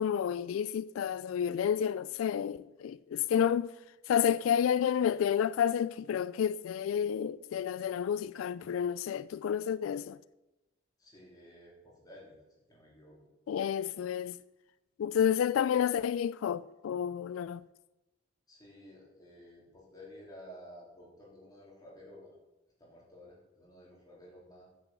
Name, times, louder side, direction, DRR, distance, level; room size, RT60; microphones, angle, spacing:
voice 1, 0.0-3.7 4.1-10.2 13.5-14.4 15.0-17.6, left 8 dB, 90° left, 0.3 m, -30 dB
voice 2, 11.0-12.4 12.7-13.2 18.5-22.4 22.8-24.6, equal, 20° left, 3.8 m, -53 dB
9.7 x 6.8 x 7.7 m
head